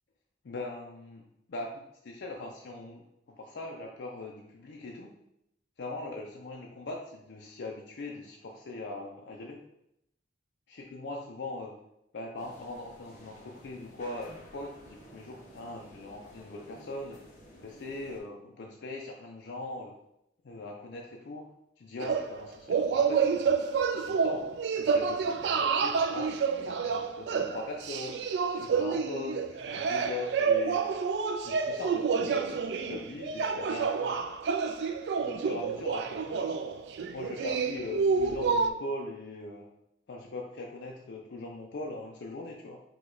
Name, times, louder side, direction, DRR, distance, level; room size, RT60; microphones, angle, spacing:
voice 1, 0.4-5.2 5.8-9.6 10.7-11.8 12.1-17.3 17.6-20.0 20.4-23.5 23.9-24.5 24.8-28.2 28.5-30.9 31.4-34.2 35.2-36.8 37.1-39.7 40.1-42.8, left 2 dB, 70° left, 0 dB, 0.4 m, -41 dB
sound 1, 12.4-18.2, equal, 40° left, 1.1 m, -53 dB
sound 2, 22.0-38.7, right 5 dB, 70° right, 0.3 m, -29 dB
4.9 x 2.2 x 3.8 m, 0.80 s
head